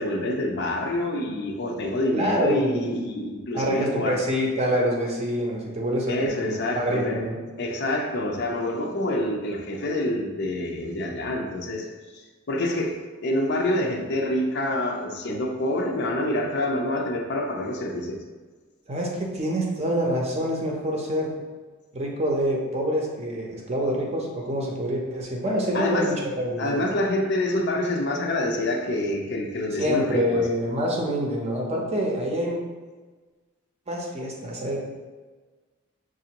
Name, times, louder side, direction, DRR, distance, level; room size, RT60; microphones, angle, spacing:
voice 1, 0.0-4.2 6.1-7.2 7.6-11.9 12.1-13.0 13.2-18.2 25.7-26.1 26.6-30.5, left 1 dB, 50° left, 2 dB, 0.5 m, -27 dB
voice 2, 2.1-2.9 3.5-7.4 18.9-21.3 21.9-26.9 29.8-32.6 33.9-34.8, equal, 30° right, -1 dB, 0.6 m, -26 dB
6.0 x 2.5 x 2.8 m, 1.3 s
head